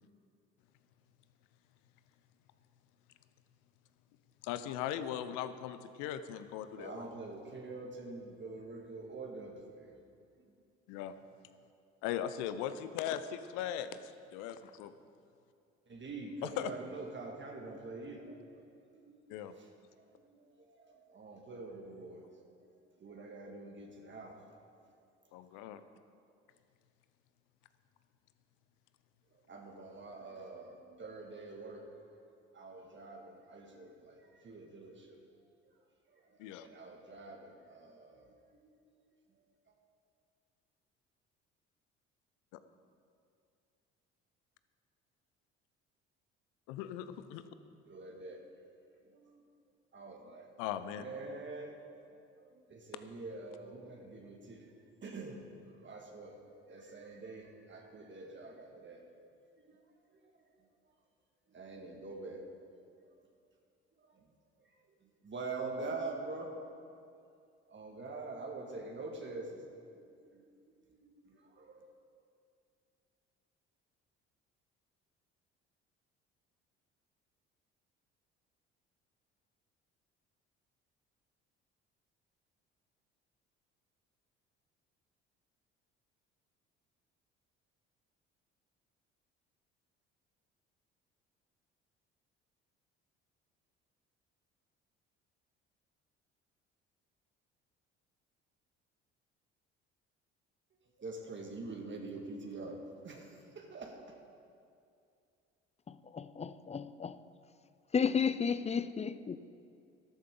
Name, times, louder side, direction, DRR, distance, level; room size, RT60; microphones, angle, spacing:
voice 1, 4.4-7.0 10.9-11.1 12.0-14.9 16.4-16.7 19.3-19.5 25.3-25.8 36.4-36.7 46.7-47.4 50.6-51.0, left 10 dB, 65° left, 0.8 m, -39 dB
voice 2, 6.8-10.0 15.9-19.2 19.6-19.7 20.0-22.5 23.0-24.4 25.5-25.7 29.3-31.9 32.5-35.4 35.6-35.7 36.1-38.8 47.9-48.5 49.1-49.4 49.9-50.5 50.9-56.4 56.7-59.1 59.6-59.8 60.2-60.3 61.5-62.5 64.0-64.3 65.0-66.5 67.7-70.4 70.9-71.9 101.0-104.2, right 3 dB, 35° right, 1.9 m, -46 dB
voice 3, 105.9-107.2 107.9-109.4, left 6 dB, 20° left, 0.5 m, -33 dB
13.0 x 13.0 x 3.8 m
hypercardioid pair, 55°, 33 cm